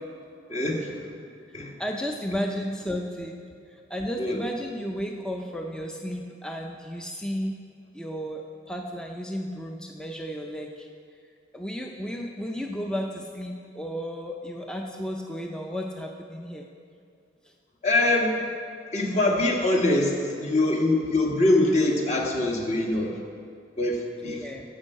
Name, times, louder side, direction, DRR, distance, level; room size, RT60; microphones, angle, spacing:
voice 1, 0.5-1.0 1.5-1.7 4.2-4.4 17.8-18.4 18.9-23.1 23.8-24.5, left 2 dB, 40° left, 0 dB, 1.4 m, -23 dB
voice 2, 1.8-7.6 7.9-10.9 11.5-16.7 24.2-24.6, equal, 5° left, 2 dB, 0.5 m, -33 dB
12.5 x 5.4 x 7.6 m, 2.3 s
head